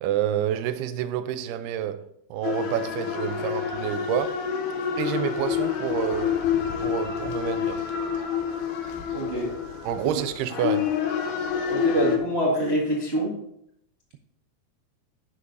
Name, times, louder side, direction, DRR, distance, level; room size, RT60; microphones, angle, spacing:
voice 1, 0.0-2.0 2.3-4.4 5.0-6.4 6.8-7.8 9.8-10.9, right 10 dB, 85° right, 2.7 m, -28 dB
sound 1, 2.4-12.2, left 8 dB, 80° left, 3.1 m, -28 dB
voice 2, 9.1-9.5 10.0-10.2 11.7-13.3, right 1 dB, 65° right, 0.6 m, -25 dB
11.5 x 6.3 x 4.0 m
omnidirectional pair, 4.5 m